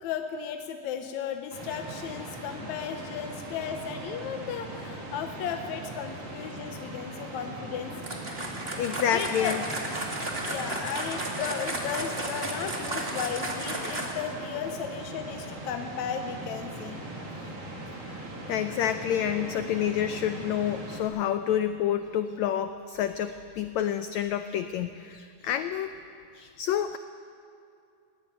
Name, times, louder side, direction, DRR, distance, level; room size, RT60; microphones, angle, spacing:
voice 1, 0.0-7.9 9.1-9.5 10.4-17.0 17.4-17.5, left 7 dB, 70° left, 5 dB, 2.0 m, -35 dB
sound 1, 1.5-21.0, right 1 dB, 45° right, 3.7 m, -40 dB
sound 2, 8.0-14.3, right 1 dB, 20° right, 2.1 m, -34 dB
voice 2, 8.8-9.6 18.5-25.9 26.3-27.0, left 10 dB, 85° left, 10 dB, 1.6 m, -28 dB
21.0 x 16.5 x 9.8 m, 2.5 s
omnidirectional pair, 3.9 m